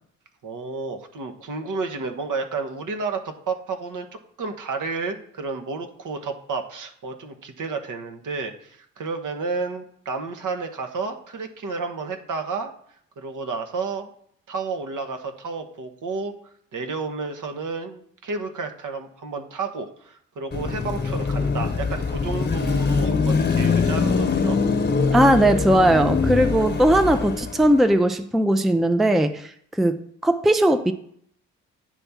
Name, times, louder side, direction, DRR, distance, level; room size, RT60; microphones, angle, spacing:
voice 1, 0.4-4.1 4.4-12.7 13.2-14.1 14.5-16.3 16.7-24.6, right 4 dB, 55° right, 6 dB, 1.2 m, -31 dB
Car passing by / Traffic noise roadway noise / Engine, 20.5-27.8, left 4 dB, 25° left, 1.3 m, -23 dB
voice 2, 25.1-30.9, right 1 dB, ahead, 8 dB, 0.6 m, -19 dB
9.3 x 3.4 x 5.7 m, 0.65 s
hypercardioid pair, 45°, 37 cm